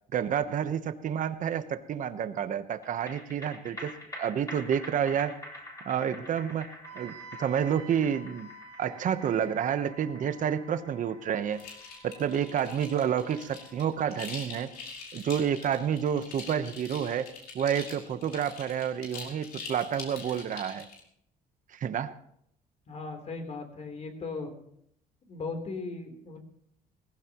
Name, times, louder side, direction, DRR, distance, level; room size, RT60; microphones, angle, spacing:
voice 1, 0.1-5.3 5.8-7.1 7.4-8.5 8.8-11.6 12.0-14.7 15.1-17.3 17.5-20.8 21.7-22.1, right 8 dB, 50° right, 11 dB, 1.0 m, -29 dB
sound 1, 2.8-15.5 15.8-15.9, left 1 dB, 20° left, 4.5 m, -47 dB
Wind instrument woodwind instrument, 6.8-14.8, right 2 dB, 75° right, 2.3 m, -51 dB
sound 2, 11.5-21.0, left 4 dB, 70° left, 5.0 m, -44 dB
voice 2, 22.9-24.5 25.2-26.4, left 3 dB, 40° left, 4 dB, 3.5 m, -37 dB
19.0 x 15.5 x 3.0 m, 0.71 s
cardioid pair, 110°, 17 cm